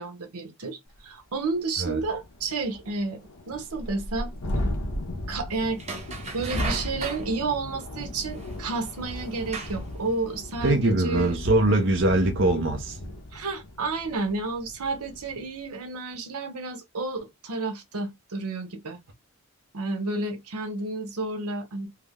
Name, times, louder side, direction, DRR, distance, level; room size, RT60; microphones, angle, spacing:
voice 1, 0.0-3.2 3.5-4.3 5.3-5.8 6.3-11.4 13.3-19.0 19.7-21.9, right 3 dB, 90° right, 0.9 m, -31 dB
Thunderstorm, 1.0-1.1 1.4-1.5 1.8-15.4, left 1 dB, 85° left, 1.0 m, -35 dB
sound 1, 5.8-7.3 8.4-8.5 9.2-9.9 10.4-10.5, right 4 dB, 30° right, 0.9 m, -35 dB
voice 2, 10.6-13.0, right 2 dB, 55° right, 0.6 m, -22 dB
3.4 x 2.1 x 3.5 m
head